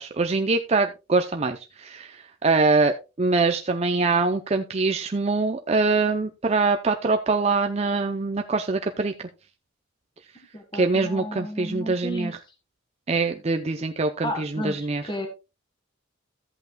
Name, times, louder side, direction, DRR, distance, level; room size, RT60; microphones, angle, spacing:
voice 1, 0.0-9.3 10.7-12.4 13.1-15.0, right 3 dB, 30° right, 5 dB, 0.5 m, -24 dB
voice 2, 10.3-12.3 14.2-15.3, equal, 25° left, 5 dB, 1.7 m, -33 dB
14.0 x 8.1 x 2.2 m, 0.27 s
head